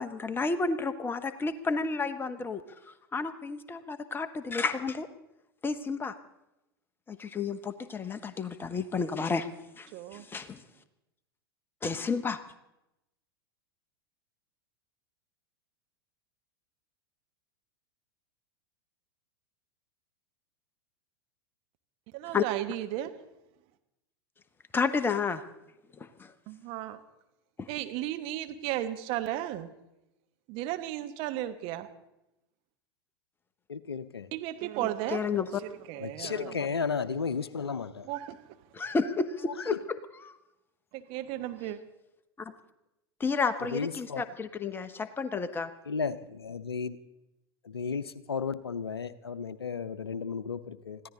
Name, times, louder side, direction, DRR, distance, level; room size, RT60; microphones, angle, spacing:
voice 1, 0.0-2.6 3.1-5.1 5.6-6.1 7.1-9.5 9.8-10.6 11.8-12.4 22.3-22.4 24.7-25.4 26.0-26.3 27.6-27.7 35.1-35.6 38.7-40.0 40.2-40.4 42.4-42.5 43.2-45.7, left 4 dB, 15° left, 11 dB, 1.0 m, -31 dB
voice 2, 9.9-10.2 22.1-23.1 26.5-27.0 27.7-29.7 30.5-31.9 34.3-35.4 35.9-36.5 38.1-38.4 40.9-41.8, right 13 dB, 45° right, 9 dB, 1.2 m, -34 dB
voice 3, 33.7-34.3 36.0-38.1 39.6-39.8 43.6-44.2 45.9-47.0 47.6-51.0, left 5 dB, 85° left, 15 dB, 0.7 m, -34 dB
20.5 x 15.0 x 3.9 m, 0.90 s
figure-of-eight pair, 90°, 13 cm